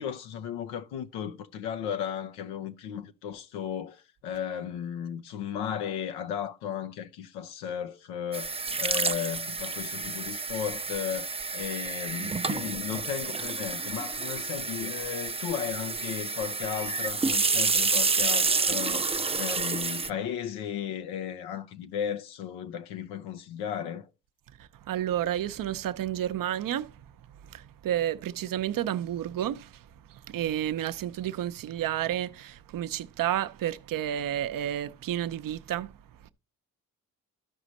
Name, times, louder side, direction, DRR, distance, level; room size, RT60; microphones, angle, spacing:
voice 1, 0.0-24.1, left 8 dB, 85° left, 0.6 m, -35 dB
sound 1, 8.3-20.1, right 4 dB, 15° right, 0.5 m, -29 dB
voice 2, 24.6-27.1 27.4-36.3, right 11 dB, 60° right, 0.7 m, -31 dB
13.0 x 5.0 x 4.1 m
hypercardioid pair, 45°, 38 cm